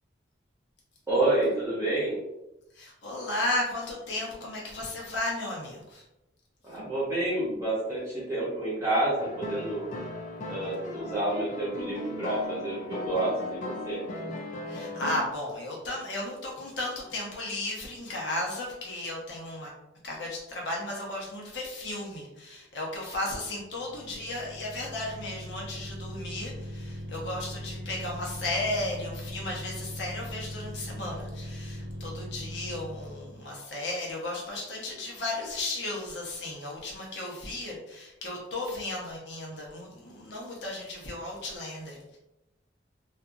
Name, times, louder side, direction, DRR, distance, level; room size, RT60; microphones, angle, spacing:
voice 1, 1.1-2.2 6.6-9.9 10.5-14.0, right 2 dB, 15° right, -8 dB, 0.8 m, -29 dB
voice 2, 2.7-6.0 14.7-19.7 20.0-42.2, left 1 dB, 70° left, -3 dB, 0.9 m, -34 dB
sound 1, 9.2-15.5, left 2 dB, 40° left, 0.4 m, -37 dB
sound 2, 23.7-33.5, equal, 60° right, 0.6 m, -40 dB
2.7 x 2.5 x 2.4 m, 0.93 s
head